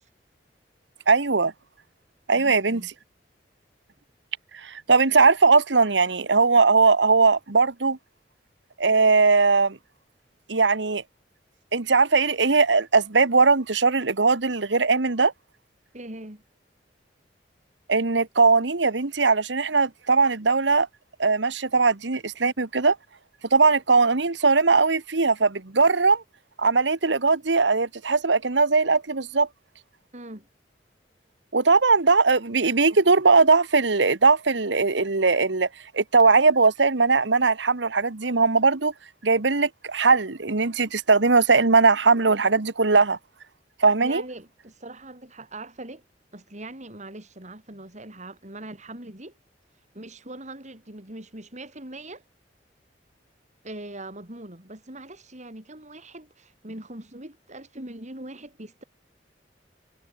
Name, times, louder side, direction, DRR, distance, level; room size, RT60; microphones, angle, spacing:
voice 1, 1.1-1.5 2.3-2.8 4.5-8.0 8.8-9.8 10.5-11.0 11.7-15.3 17.9-20.9 21.2-23.0 23.5-26.2 26.6-29.5 31.5-35.7 35.9-38.9 39.2-43.2 43.8-44.2, right 4 dB, 85° right, 1.4 m, -20 dB
voice 2, 2.3-2.9 15.9-16.4 30.1-30.5 44.0-46.0 46.3-49.4 49.9-52.2 53.6-58.8, right 1 dB, 40° right, 5.8 m, -41 dB
head